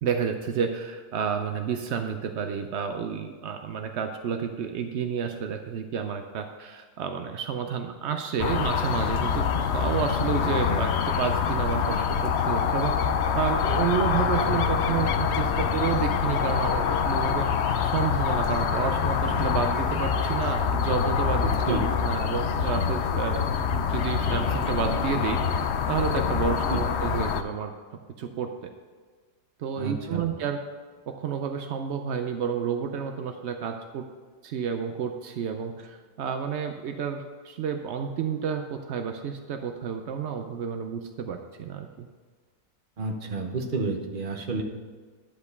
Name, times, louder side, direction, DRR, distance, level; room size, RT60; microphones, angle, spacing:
voice 1, 0.0-12.9 13.3-17.5 17.8-25.4 25.9-27.7 28.2-28.5 29.6-30.6 31.1-34.0 34.4-42.1, right 7 dB, 75° right, 6 dB, 0.6 m, -30 dB
sound 1, 8.4-27.4, left 7 dB, 75° left, 0.6 m, -25 dB
sound 2, 13.5-20.3, right 1 dB, 55° right, 2.5 m, -41 dB
voice 2, 21.4-21.8 26.4-26.8 29.8-30.2 43.0-44.6, right 3 dB, 35° right, 3 dB, 0.9 m, -30 dB
10.5 x 5.2 x 6.7 m, 1.5 s
omnidirectional pair, 1.8 m